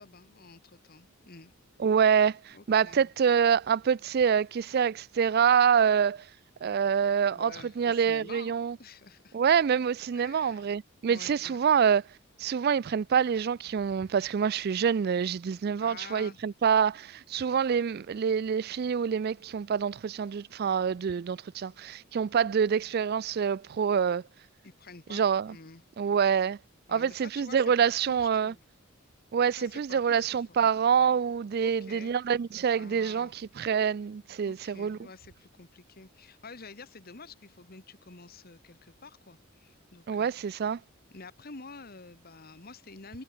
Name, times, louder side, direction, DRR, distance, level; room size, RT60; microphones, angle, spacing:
voice 1, 0.0-1.5 2.5-3.1 7.2-9.4 10.1-10.7 11.0-11.6 15.8-16.4 24.6-25.8 26.9-28.6 29.6-30.6 31.6-32.1 32.7-33.3 34.4-40.6 41.1-43.2, left 4 dB, 45° left, 1.5 m, -49 dB
voice 2, 1.8-6.3 6.6-8.8 9.3-12.0 12.4-24.2 25.1-25.6 26.0-26.6 26.9-28.5 29.3-35.0 40.1-40.8, right 7 dB, 50° right, 0.4 m, -26 dB
head